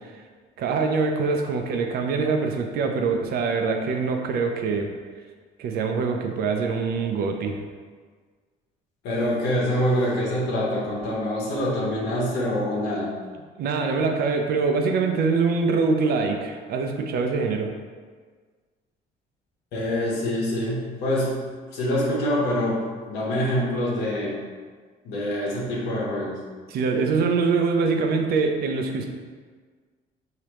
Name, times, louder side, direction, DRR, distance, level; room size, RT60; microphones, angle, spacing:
voice 1, 0.6-4.9 5.6-7.6 13.6-17.7 26.7-29.1, right 4 dB, 65° right, 4 dB, 0.6 m, -24 dB
voice 2, 9.0-13.1 19.7-21.3 21.7-24.4 25.0-26.4, left 1 dB, 90° left, -5 dB, 1.2 m, -25 dB
5.0 x 2.8 x 3.0 m, 1.5 s
cardioid pair, 110°, 17 cm